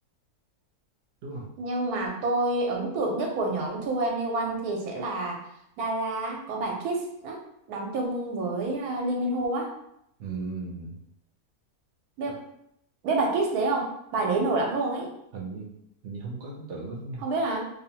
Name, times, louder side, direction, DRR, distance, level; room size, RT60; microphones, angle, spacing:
voice 1, 1.6-5.4 5.8-7.4 7.7-9.7 12.2-12.4 13.0-15.1 17.2-17.6, right 2 dB, 90° right, 1 dB, 1.1 m, -28 dB
voice 2, 10.2-10.9 15.3-15.7 16.0-17.3, right 3 dB, 65° right, -2 dB, 0.7 m, -36 dB
2.6 x 2.0 x 2.8 m, 0.77 s
omnidirectional pair, 1.5 m